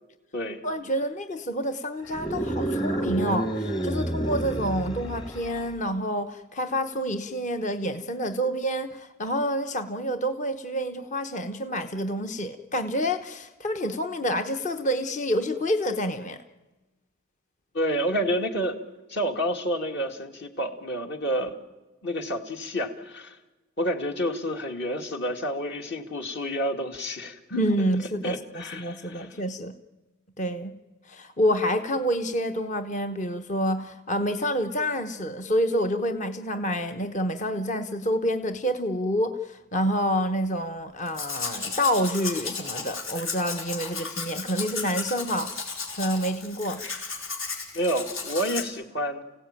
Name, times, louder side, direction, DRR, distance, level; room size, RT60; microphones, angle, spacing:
voice 1, 0.6-16.4 27.5-29.8 30.4-30.8 31.1-45.5 45.9-46.8, equal, 40° left, 7 dB, 1.0 m, -28 dB
sound 1, 2.1-5.7, right 1 dB, 20° left, 1.4 m, -29 dB
voice 2, 17.7-18.8 19.1-21.6 22.0-23.4 23.8-27.4 28.2-29.3 47.7-49.2, equal, 55° left, 4 dB, 2.4 m, -29 dB
Domestic sounds home sounds, 41.1-48.6, left 4 dB, 75° left, 4.5 m, -34 dB
29.5 x 16.5 x 9.1 m, 1.2 s
head